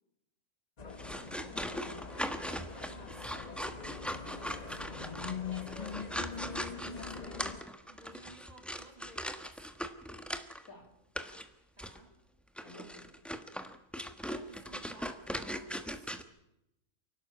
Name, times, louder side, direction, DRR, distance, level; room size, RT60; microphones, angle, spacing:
sound 1, 0.8-7.6, left 6 dB, 30° left, 1.0 m, -43 dB
sound 2, 0.9-10.7 11.1-11.5 11.8-12.0 12.6-16.2, equal, ahead, 1.1 m, -40 dB
voice 1, 1.0-2.4 10.7-11.0 12.6-13.2, left 2 dB, 80° left, 4 dB, 3.7 m, -53 dB
voice 2, 2.6-3.7 4.4-9.7 11.8-12.2 14.3-16.1, right 2 dB, 25° right, 4 dB, 3.2 m, -56 dB
28.5 x 12.5 x 8.6 m, 0.87 s
omnidirectional pair, 1.5 m